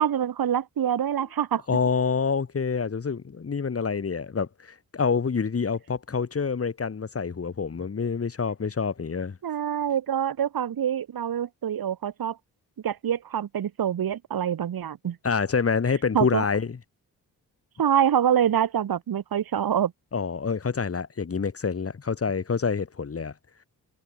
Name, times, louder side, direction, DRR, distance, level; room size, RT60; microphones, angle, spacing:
voice 1, 0.0-1.6 9.4-12.4 12.8-15.2 16.1-16.5 17.8-19.9, right 9 dB, 80° right, 8.0 m, -25 dB
voice 2, 1.7-9.4 15.2-16.8 20.1-23.3, left 5 dB, 40° left, 6.9 m, -27 dB
wide cardioid pair, 130°, 35 cm